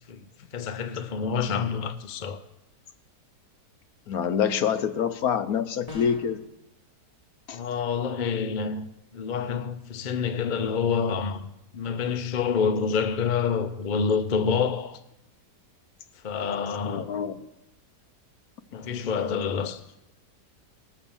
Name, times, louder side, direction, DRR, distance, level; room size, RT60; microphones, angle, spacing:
voice 1, 0.5-2.4 7.5-8.9 9.1-11.5 11.7-15.0 16.2-17.1 18.7-19.8, left 6 dB, 50° left, 0.5 m, -27 dB
voice 2, 4.1-6.4 7.5-7.6 16.8-17.4, left 7 dB, 65° left, 1.2 m, -26 dB
sound 1, 5.9-6.4, left 2 dB, 20° left, 3.6 m, -40 dB
18.5 x 7.1 x 7.1 m
omnidirectional pair, 1.8 m